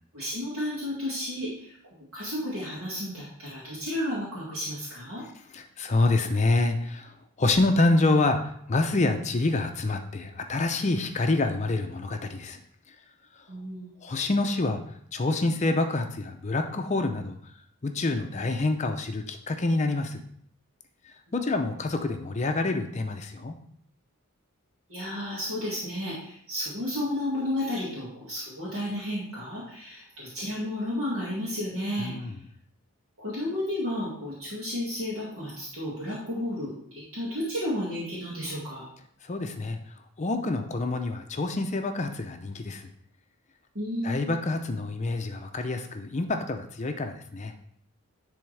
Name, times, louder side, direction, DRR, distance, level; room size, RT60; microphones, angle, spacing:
voice 1, 0.1-1.7 2.1-5.2 13.5-13.9 24.9-32.1 33.2-36.7 37.1-38.8 43.7-44.3, left 1 dB, 70° right, -8 dB, 2.1 m, -32 dB
voice 2, 5.5-12.6 12.9-13.0 14.0-14.8 15.1-17.4 17.8-20.2 21.3-23.5 32.0-32.4 39.2-39.8 40.2-42.9 44.0-47.5, left 2 dB, 30° left, 6 dB, 0.5 m, -27 dB
10.5 x 3.5 x 3.3 m, 0.67 s
head